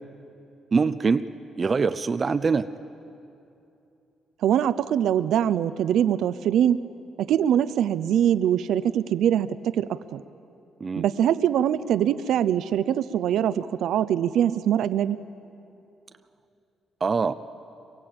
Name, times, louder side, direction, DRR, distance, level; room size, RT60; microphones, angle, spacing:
voice 1, 0.7-1.3 1.6-2.7 10.8-11.1 17.0-17.3, right 5 dB, 30° right, 11 dB, 0.5 m, -23 dB
voice 2, 4.4-6.9 7.2-10.2 11.0-15.2, right 10 dB, 80° right, 14 dB, 0.6 m, -23 dB
24.5 x 22.5 x 8.8 m, 2.7 s
cardioid pair, 120°, 0 cm